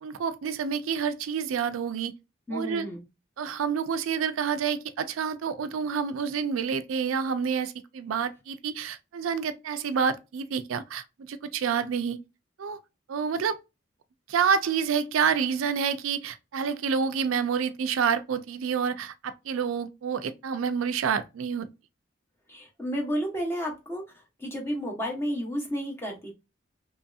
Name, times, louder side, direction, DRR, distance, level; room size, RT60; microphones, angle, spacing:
voice 1, 0.0-2.1 2.5-2.9 3.4-12.2 12.6-12.8 13.1-13.6 14.3-21.7, right 6 dB, 85° right, 0.4 m, -28 dB
voice 2, 2.5-3.0 22.5-26.3, equal, 10° left, 0.8 m, -32 dB
3.0 x 2.6 x 2.3 m
head